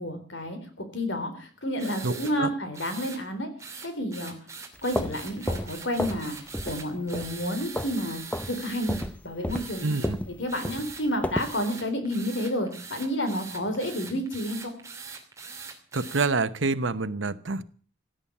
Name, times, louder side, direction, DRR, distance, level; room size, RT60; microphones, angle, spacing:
voice 1, 0.0-3.5 3.8-4.4 4.8-6.4 6.6-8.2 8.5-9.9 10.3-14.7, equal, 70° left, 8 dB, 3.8 m, -30 dB
sound 1, 1.8-2.3 2.7-3.2 3.6-9.1 9.5-10.1 10.5-11.0 11.4-16.3, right 5 dB, 15° right, 2.8 m, -42 dB
voice 2, 2.0-2.5 9.8-10.2 15.9-17.6, right 3 dB, 80° right, 12 dB, 1.0 m, -27 dB
sound 2, 4.7-6.3 6.5-6.8 7.1-8.0 8.3-8.5 8.9-11.6, left 1 dB, 5° left, 0.7 m, -32 dB
17.0 x 9.0 x 8.5 m, 0.43 s
head